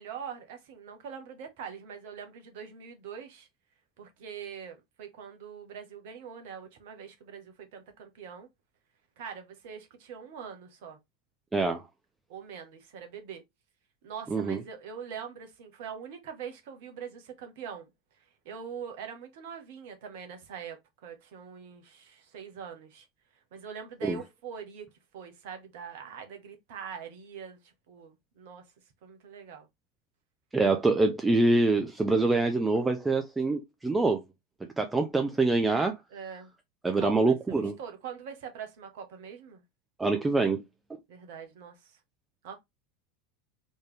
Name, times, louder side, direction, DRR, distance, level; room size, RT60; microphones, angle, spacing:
voice 1, 0.0-3.5 4.0-8.5 9.2-11.0 12.3-13.4 14.0-17.9 18.4-23.1 23.5-24.9 25.1-28.6 29.0-29.7 36.1-36.5 36.9-39.6 41.1-41.9 42.4-42.5, right 7 dB, 60° right, 1.4 m, -43 dB
voice 2, 11.5-11.8 14.3-14.6 24.0-24.2 30.5-34.2 34.8-36.0 36.8-37.8 40.0-40.6, right 3 dB, 15° right, 0.7 m, -25 dB
4.2 x 3.2 x 3.4 m
figure-of-eight pair, 80°, 0 cm